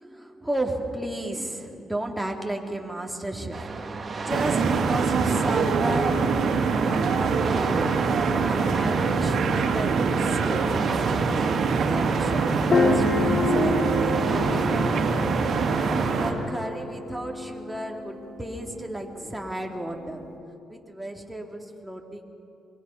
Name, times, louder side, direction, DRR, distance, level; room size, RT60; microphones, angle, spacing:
voice 1, 0.0-6.3 6.8-7.9 8.4-10.6 11.2-11.6 11.9-15.1 15.6-20.2 20.7-22.2, right 1 dB, 5° right, 1 dB, 2.6 m, -34 dB
sound 1, 3.5-16.1, right 3 dB, 35° right, 2.0 m, -34 dB
sound 2, 4.3-16.3, right 5 dB, 65° right, 2.5 m, -24 dB
sound 3, 11.7-11.8 12.7-20.4, left 3 dB, 40° left, 2.4 m, -29 dB
25.0 x 23.0 x 5.7 m, 2.7 s
cardioid pair, 90°, 0 cm